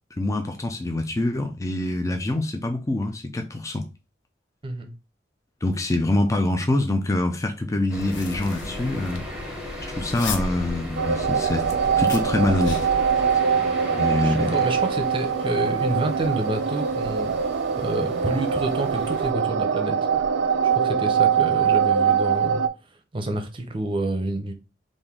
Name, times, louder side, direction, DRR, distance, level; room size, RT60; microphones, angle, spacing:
voice 1, 0.2-3.8 5.6-9.2 10.0-11.7 12.0-12.9 14.0-14.6, left 2 dB, 15° left, 0.4 m, -25 dB
sound 1, 7.9-13.4, left 2 dB, 85° left, 0.6 m, -35 dB
sound 2, 7.9-19.3, left 1 dB, 5° right, 1.0 m, -38 dB
sound 3, 11.0-22.7, right 7 dB, 70° right, 0.4 m, -23 dB
voice 2, 14.1-17.3 17.8-20.0 20.6-22.6 23.1-24.5, right 2 dB, 30° right, 0.7 m, -28 dB
3.5 x 2.6 x 3.7 m
head